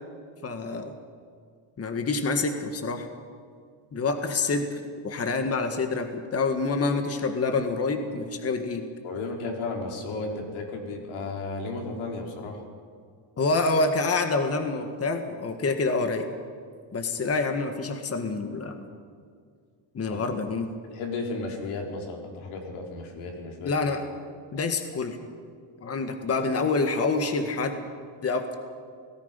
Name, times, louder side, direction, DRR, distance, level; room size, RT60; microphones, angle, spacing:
voice 1, 0.4-1.0 1.8-3.1 3.9-8.8 13.4-16.3 16.9-18.9 19.9-20.7 23.7-24.0 24.5-25.2 25.8-27.8 28.2-28.6, left 3 dB, 30° left, 6 dB, 1.7 m, -27 dB
voice 2, 9.0-12.6 20.1-20.2 20.9-23.7, left 3 dB, 90° left, 1 dB, 4.4 m, -34 dB
29.0 x 18.5 x 5.3 m, 2.1 s
cardioid pair, 125°, 47 cm